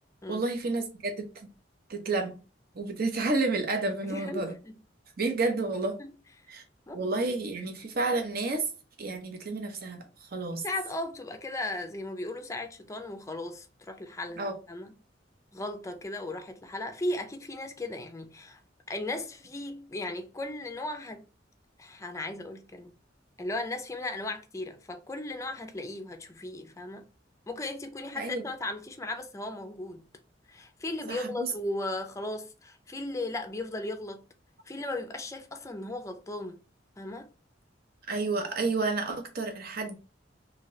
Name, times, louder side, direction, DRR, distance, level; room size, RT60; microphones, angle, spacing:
voice 1, 0.3-1.5 1.9-2.4 2.7-4.5 5.2-6.0 6.5-6.6 6.9-8.7 9.0-10.6 14.4-14.6 28.1-28.5 31.1-31.5 38.1-40.0, right 3 dB, 55° right, 0.7 m, -30 dB
voice 2, 4.0-4.7 6.0-6.1 6.9-7.0 10.6-14.9 15.5-18.6 18.9-21.2 21.8-22.9 23.4-27.1 27.5-30.0 30.5-34.3 34.7-36.6 37.0-37.3, left 2 dB, 15° left, 0.4 m, -36 dB
2.9 x 2.7 x 3.0 m
head